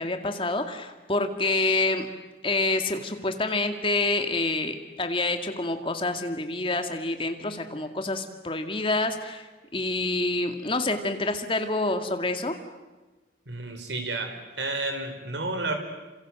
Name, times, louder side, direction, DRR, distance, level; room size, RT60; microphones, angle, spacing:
voice 1, 0.0-2.1 2.4-9.5 9.7-12.5, left 2 dB, 30° left, 6 dB, 2.2 m, -27 dB
voice 2, 13.5-15.7, right 2 dB, 80° right, 6 dB, 4.7 m, -31 dB
29.0 x 27.0 x 7.8 m, 1.2 s
head